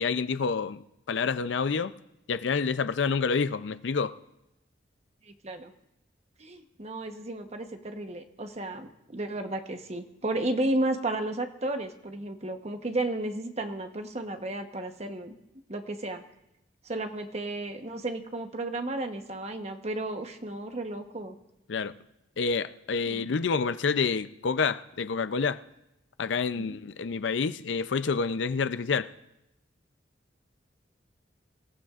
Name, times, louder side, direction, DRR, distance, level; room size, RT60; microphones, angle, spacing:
voice 1, 0.0-1.9 2.3-4.1 21.7-22.0 22.4-25.6 26.2-29.1, left 5 dB, 75° left, 0.5 m, -28 dB
voice 2, 5.3-5.7 6.4-15.4 15.7-16.2 16.8-21.3 23.1-23.3 26.6-26.8, right 2 dB, 35° right, 1.0 m, -33 dB
25.5 x 14.5 x 2.5 m
head